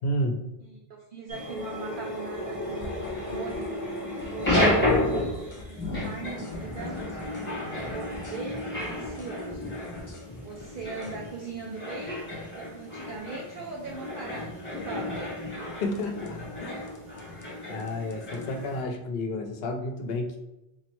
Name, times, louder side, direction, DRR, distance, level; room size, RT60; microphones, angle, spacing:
voice 1, 0.0-0.4 15.8-16.9 17.7-20.4, left 1 dB, 70° left, 5 dB, 0.8 m, -31 dB
voice 2, 0.6-3.9 4.3-5.0 5.7-7.0 7.5-9.7 10.4-12.2 12.6-15.2, right 4 dB, 60° right, -2 dB, 0.7 m, -40 dB
sound 1, 1.3-18.8, left 1 dB, 10° left, 1.2 m, -32 dB
sound 2, 2.8-3.7 4.0-7.5 7.8-11.2 15.9-16.3 16.9-17.5 17.8-18.5, left 1 dB, 30° left, 0.3 m, -45 dB
3.8 x 3.1 x 3.0 m, 0.94 s
omnidirectional pair, 1.1 m